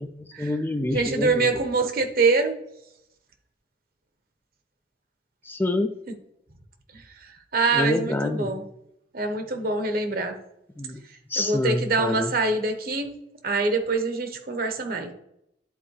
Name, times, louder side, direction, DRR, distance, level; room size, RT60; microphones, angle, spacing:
voice 1, 0.0-1.5 5.4-5.9 7.7-8.6 10.8-11.0 11.3-12.3, left 1 dB, 10° left, 7 dB, 0.4 m, -27 dB
voice 2, 0.9-2.5 6.9-8.6 9.1-10.3 11.4-13.1 13.4-15.1, right 3 dB, 55° right, 6 dB, 1.2 m, -25 dB
11.0 x 4.3 x 3.3 m, 0.78 s
head